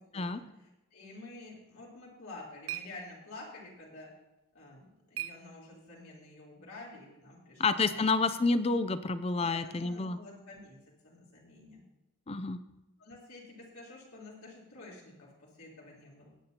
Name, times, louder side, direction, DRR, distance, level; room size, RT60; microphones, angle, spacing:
voice 1, 0.1-4.1 4.5-8.0 9.4-10.8 11.0-11.8 13.0-16.3, left 2 dB, 80° left, -5 dB, 3.7 m, -50 dB
sound 1, 1.9-6.1, right 12 dB, 80° right, 0.7 m, -46 dB
voice 2, 7.6-10.2 12.3-12.6, left 3 dB, 25° left, 12 dB, 0.5 m, -29 dB
18.5 x 9.4 x 2.9 m, 0.95 s
head